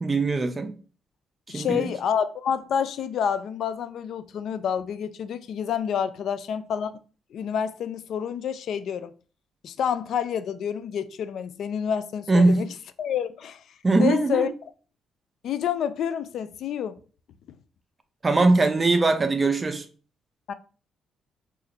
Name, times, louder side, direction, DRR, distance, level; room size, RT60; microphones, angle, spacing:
voice 1, 0.0-0.7 1.5-1.9 12.3-12.6 13.8-14.5 18.2-19.8, right 3 dB, 25° right, 0.5 m, -21 dB
voice 2, 1.5-6.9 7.3-9.1 9.6-12.7 13.0-14.5 15.4-17.0 20.5-20.6, left 8 dB, 70° left, 0.3 m, -28 dB
2.5 x 2.5 x 4.0 m
cardioid pair, 90°, 0 cm